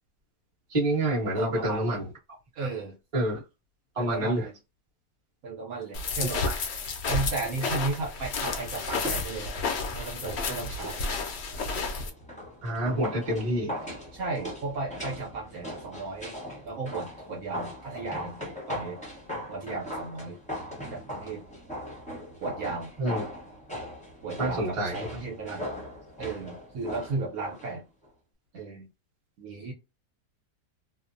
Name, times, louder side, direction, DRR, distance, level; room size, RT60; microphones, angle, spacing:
voice 1, 0.7-2.1 2.6-2.7 3.1-3.4 3.9-4.5 12.6-13.7 23.0-23.2 24.4-25.1 25.5-25.6, right 1 dB, 25° right, 0.9 m, -27 dB
voice 2, 1.3-2.0 2.6-3.0 4.0-4.5 5.4-6.4 7.0-9.5 9.9-10.9 14.1-16.3 16.6-19.0 19.5-20.4 20.9-21.4 22.4-22.9 24.2-25.6 26.2-27.8 28.5-28.9 29.4-29.7, right 3 dB, 65° right, 1.1 m, -35 dB
sound 1, 5.9-12.1, left 4 dB, 70° left, 0.6 m, -31 dB
sound 2, 8.9-27.7 28.0-28.1, equal, 5° left, 0.6 m, -40 dB
2.8 x 2.0 x 2.5 m
omnidirectional pair, 1.8 m